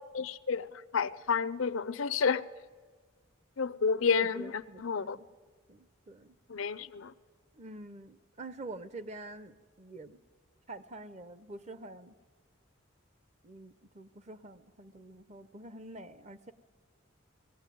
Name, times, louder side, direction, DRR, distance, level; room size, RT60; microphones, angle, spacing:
voice 1, 0.1-0.7 0.9-2.4 3.6-5.2 6.5-7.1, left 5 dB, 75° left, 0.6 m, -30 dB
voice 2, 4.1-5.3 5.7-6.4 7.6-10.2 10.7-12.1 13.4-16.5, right 2 dB, 35° right, 0.8 m, -46 dB
19.5 x 15.5 x 9.2 m
head